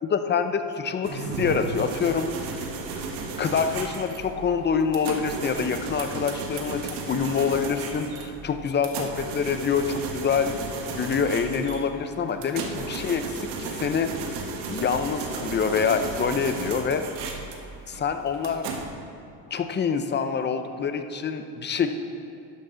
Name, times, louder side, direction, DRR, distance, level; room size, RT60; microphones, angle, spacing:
voice 1, 0.0-2.3 3.4-10.6 10.9-14.1 14.7-17.0 17.9-18.7 19.5-21.9, left 6 dB, 25° left, 8 dB, 0.7 m, -26 dB
sound 1, 1.0-18.9, right 4 dB, 75° right, 1.5 m, -34 dB
12.5 x 10.5 x 3.9 m, 2.6 s
cardioid pair, 120°, 40 cm